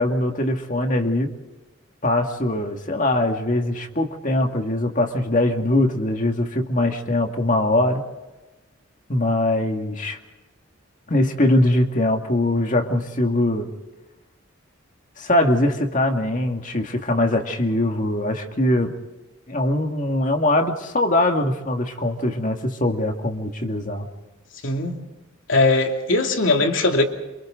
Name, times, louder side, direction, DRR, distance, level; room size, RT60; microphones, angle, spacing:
voice 1, 0.0-1.3 2.0-8.0 9.1-10.2 11.1-13.7 15.2-18.9 19.5-24.1, left 1 dB, 40° left, 4 dB, 2.1 m, -22 dB
voice 2, 24.6-25.0 25.5-27.0, left 2 dB, 70° left, 3 dB, 2.8 m, -19 dB
28.0 x 27.5 x 3.9 m, 1.1 s
head